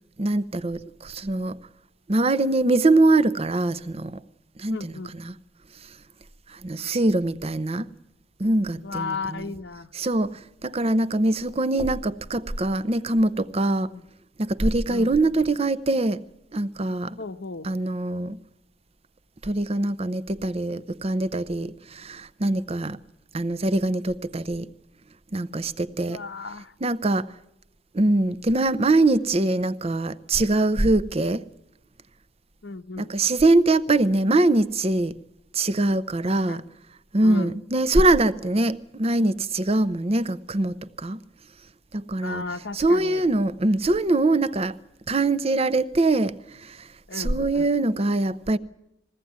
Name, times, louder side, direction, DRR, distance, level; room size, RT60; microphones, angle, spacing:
voice 1, 0.2-1.6 2.1-4.2 4.6-5.4 6.6-7.9 8.4-9.5 9.9-13.9 14.4-16.2 16.5-17.2 17.6-18.4 19.4-23.0 23.3-24.7 25.3-26.2 26.8-27.3 27.9-31.4 33.0-35.2 35.5-36.6 37.1-41.2 41.9-42.4 42.7-44.7 45.1-46.4 46.6-46.9 47.1-48.6, right 2 dB, 35° right, 0.7 m, -23 dB
voice 2, 4.7-5.1 8.8-9.9 13.9-14.0 14.9-15.1 17.2-17.7 26.1-26.7 32.6-33.1 36.5-36.6 37.2-37.6 42.2-43.2 47.1-47.7, left 4 dB, 85° left, 0.9 m, -35 dB
20.5 x 16.5 x 9.4 m
head